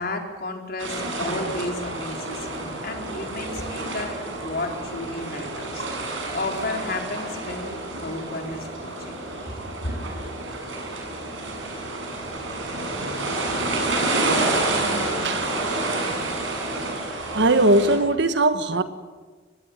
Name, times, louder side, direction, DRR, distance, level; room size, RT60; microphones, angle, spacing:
voice 1, 0.0-9.1 9.5-10.0, left 2 dB, 50° left, 4.3 m, -33 dB
sound 1, 0.8-18.0, right 2 dB, 80° right, 7.8 m, -29 dB
voice 2, 15.2-16.3 16.7-16.9 17.3-18.8, right 2 dB, 60° right, 1.6 m, -22 dB
25.0 x 21.0 x 9.8 m
head